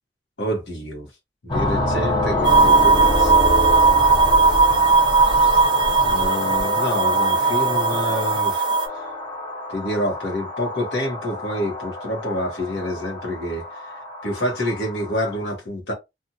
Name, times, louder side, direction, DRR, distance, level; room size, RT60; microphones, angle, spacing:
voice 1, 0.4-1.1 1.4-4.1 4.7-4.8 6.0-8.7 9.7-13.7 14.2-15.9, equal, 75° left, 1.2 m, -28 dB
sound 1, 1.5-15.4, left 1 dB, 25° left, 0.8 m, -27 dB
sound 2, 2.4-8.9, right 4 dB, 25° right, 0.6 m, -18 dB
2.6 x 2.5 x 2.7 m
head